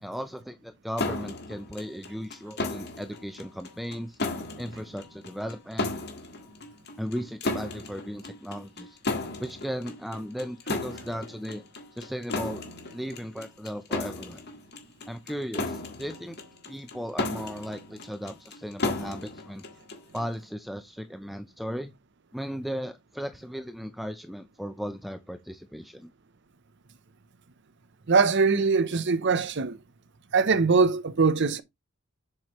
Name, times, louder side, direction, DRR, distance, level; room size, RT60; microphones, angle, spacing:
voice 1, 0.0-4.2 4.6-6.0 7.0-9.0 9.4-11.6 11.9-12.6 12.9-14.4 15.1-16.4 16.7-19.6 20.1-21.9 22.3-26.1, equal, ahead, 0.5 m, -36 dB
sound 1, 1.0-20.3, left 2 dB, 50° left, 1.8 m, -35 dB
voice 2, 28.1-29.8 30.3-31.6, right 4 dB, 55° right, 0.7 m, -22 dB
7.5 x 5.8 x 3.0 m
head